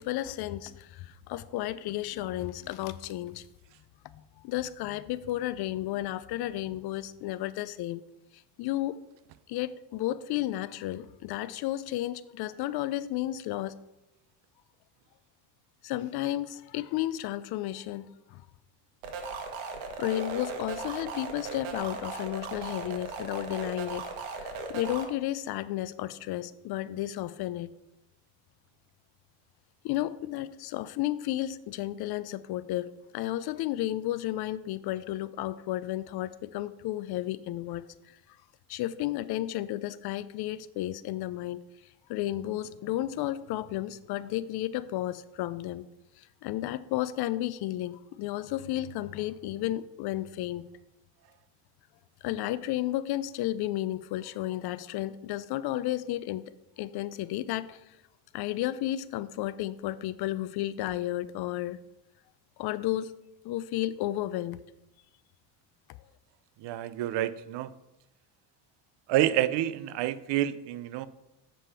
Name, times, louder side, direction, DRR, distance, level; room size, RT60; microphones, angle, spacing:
voice 1, 0.0-3.5 4.4-8.0 8.6-9.0 9.5-13.8 15.8-18.4 20.0-24.1 24.4-27.7 29.8-38.2 38.7-41.6 42.1-45.9 46.2-50.7 52.2-56.4 56.8-58.0 58.3-61.8 62.6-63.1 63.4-64.6, left 14 dB, 55° left, 16 dB, 0.5 m, -33 dB
sound 1, 19.0-25.0, right 4 dB, 75° right, 1.6 m, -37 dB
voice 2, 66.6-67.7 69.1-71.1, right 13 dB, 60° right, 15 dB, 0.6 m, -28 dB
7.7 x 5.1 x 5.6 m, 0.89 s
cardioid pair, 130°, 48 cm